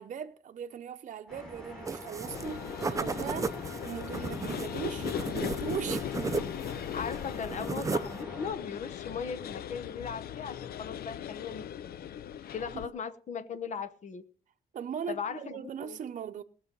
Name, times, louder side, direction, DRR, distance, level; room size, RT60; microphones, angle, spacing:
voice 1, 0.0-6.1 12.4-12.5 14.7-16.4, right 8 dB, 50° right, 0.8 m, -39 dB
sound 1, 1.3-8.5, equal, 5° left, 7.5 m, -45 dB
sound 2, 1.9-2.5 2.8-6.8 7.1-8.2, right 4 dB, 20° right, 0.6 m, -35 dB
sound 3, 2.3-12.9, left 10 dB, 70° left, 0.5 m, -39 dB
voice 2, 6.9-11.9 12.5-14.2 15.1-16.0, left 6 dB, 50° left, 1.1 m, -38 dB
19.0 x 6.8 x 5.4 m
cardioid pair, 140°, 16 cm